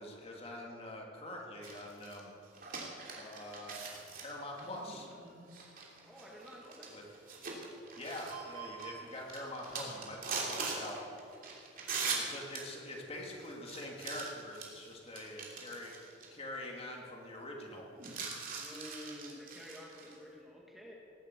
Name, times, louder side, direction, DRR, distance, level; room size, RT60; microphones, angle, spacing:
voice 1, 0.0-2.3 3.1-5.1 6.9-7.0 8.0-11.0 12.2-15.9 16.3-17.8, left 1 dB, 35° left, -1 dB, 2.6 m, -45 dB
sound 1, 1.6-16.3 16.5-16.6 18.0-20.1, right 4 dB, 50° right, 2.9 m, -42 dB
voice 2, 6.0-7.0 11.8-12.3 18.6-21.0, equal, ahead, -3 dB, 2.0 m, -50 dB
18.5 x 8.7 x 8.3 m, 2.9 s
head